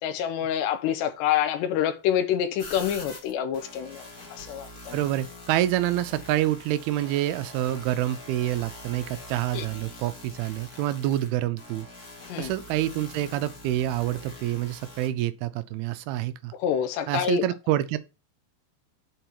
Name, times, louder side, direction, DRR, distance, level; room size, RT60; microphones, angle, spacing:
voice 1, 0.0-4.0 4.3-5.0 9.5-9.7 12.3-12.5 16.6-17.4, left 9 dB, 75° left, 3.0 m, -27 dB
sound 1, 2.6-15.1, left 2 dB, 45° left, 1.2 m, -44 dB
voice 2, 4.9-11.9 12.4-16.5 17.1-18.0, right 13 dB, 85° right, 2.2 m, -27 dB
8.0 x 4.7 x 5.9 m
omnidirectional pair, 5.2 m